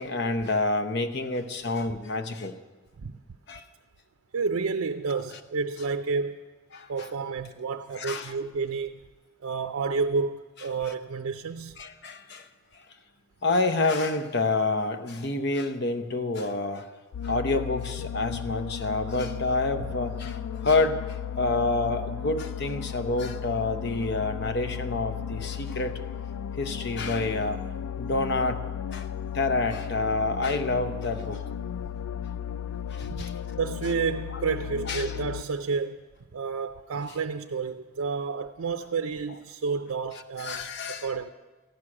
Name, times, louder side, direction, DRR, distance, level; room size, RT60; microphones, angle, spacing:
voice 1, 0.0-2.6 3.5-3.6 6.7-7.1 8.0-8.3 10.9-11.0 11.8-12.5 13.4-16.9 17.2-26.0 26.6-27.6 28.0-28.6 28.9-29.1 29.3-31.4 32.9-33.3 34.9-35.1 40.4-41.1, left 3 dB, 50° left, 0.8 m, -28 dB
voice 2, 4.3-6.4 6.9-9.0 9.4-11.8 33.0-33.2 33.5-36.0 36.3-41.3, right 5 dB, 75° right, 0.5 m, -30 dB
sound 1, 17.1-35.4, left 8 dB, 90° left, 0.3 m, -35 dB
14.0 x 6.3 x 9.7 m
head